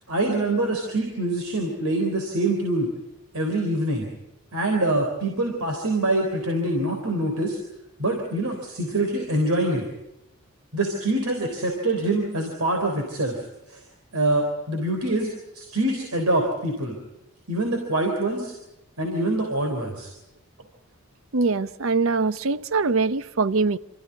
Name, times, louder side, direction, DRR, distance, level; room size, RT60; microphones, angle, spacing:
voice 1, 0.1-2.9 3.3-4.1 4.5-7.6 8.0-9.9 10.7-13.8 14.1-17.0 17.5-18.5 19.0-20.1, right 1 dB, 90° right, 3.7 m, -25 dB
voice 2, 21.3-23.8, right 4 dB, 70° right, 0.7 m, -23 dB
27.5 x 14.5 x 9.5 m
head